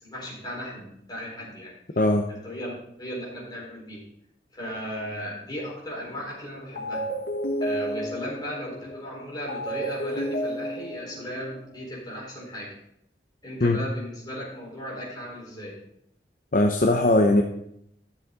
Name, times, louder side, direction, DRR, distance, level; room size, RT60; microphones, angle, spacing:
voice 1, 0.0-1.7 2.3-4.0 4.5-7.1 7.6-12.7 13.4-15.8, equal, 25° left, -4 dB, 4.3 m, -36 dB
voice 2, 2.0-2.3 13.6-13.8 16.5-17.4, left 2 dB, 50° left, 4 dB, 0.7 m, -20 dB
sound 1, 6.1-6.4 6.8-11.9, equal, 75° left, 1.9 m, -32 dB
13.0 x 7.0 x 3.9 m, 0.74 s
head